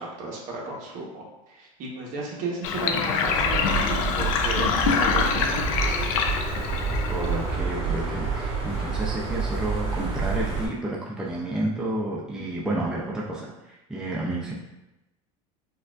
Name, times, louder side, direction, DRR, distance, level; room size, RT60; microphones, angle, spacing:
voice 1, 0.0-6.0, right 3 dB, 50° right, -2 dB, 1.0 m, -35 dB
Sink (filling or washing), 2.6-7.6, left 6 dB, 80° left, 0.4 m, -25 dB
sound 1, 3.2-10.7, right 4 dB, 35° right, 1.2 m, -28 dB
voice 2, 7.1-14.5, right 1 dB, 5° right, -4 dB, 0.4 m, -30 dB
4.3 x 2.4 x 2.4 m, 0.97 s
supercardioid pair, 125°, 18 cm